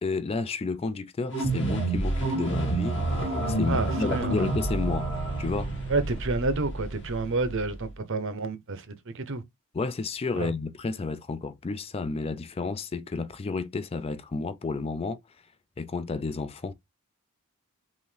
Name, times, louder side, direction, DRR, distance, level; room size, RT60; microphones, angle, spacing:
voice 1, 0.0-5.1 5.4-5.7 9.7-15.2 15.8-16.7, left 4 dB, 25° left, 0.3 m, -31 dB
sound 1, 1.3-7.9, right 2 dB, 55° left, 1.7 m, -29 dB
voice 2, 3.7-4.5 5.9-9.4 10.4-10.5, right 3 dB, 60° right, 0.7 m, -29 dB
5.6 x 2.6 x 3.2 m
head